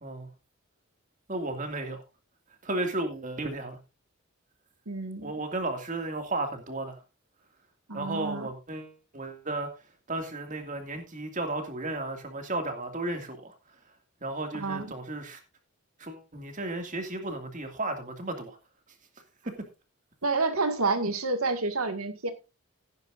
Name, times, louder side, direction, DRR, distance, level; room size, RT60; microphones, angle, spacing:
voice 1, 1.3-2.0 2.6-3.8 5.2-7.0 7.9-9.7 10.1-13.5 14.2-15.4 16.0-18.6 19.5-19.6, right 2 dB, 35° right, 2.3 m, -34 dB
voice 2, 4.9-5.3 7.9-8.5 14.5-14.9 20.2-22.3, right 3 dB, 80° right, 2.0 m, -29 dB
16.5 x 9.8 x 2.6 m
head